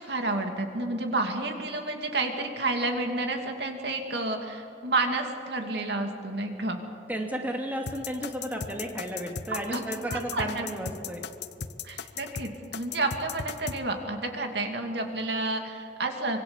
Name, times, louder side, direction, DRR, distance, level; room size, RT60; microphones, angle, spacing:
voice 1, 0.0-6.8 9.5-9.8 10.1-10.6 11.8-16.4, right 2 dB, 65° right, 4 dB, 2.7 m, -30 dB
voice 2, 7.1-11.2, right 1 dB, 10° right, 2 dB, 2.3 m, -33 dB
sound 1, 7.9-13.8, left 6 dB, 65° left, 0.9 m, -37 dB
25.5 x 23.0 x 7.2 m, 2.7 s
head